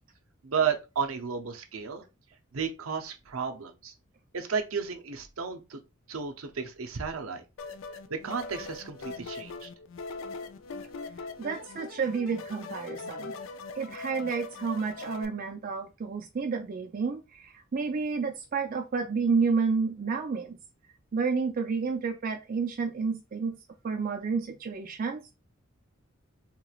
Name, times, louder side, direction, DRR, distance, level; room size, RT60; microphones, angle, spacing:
voice 1, 0.4-2.1 2.5-3.9 4.3-5.8 6.1-7.4 8.1-9.7, right 6 dB, 90° right, 0.6 m, -33 dB
sound 1, 7.6-15.3, left 3 dB, 65° left, 0.4 m, -41 dB
voice 2, 11.4-13.4 13.8-20.6 21.1-23.6 23.8-25.4, right 5 dB, 45° right, 0.4 m, -30 dB
3.8 x 3.0 x 2.4 m
head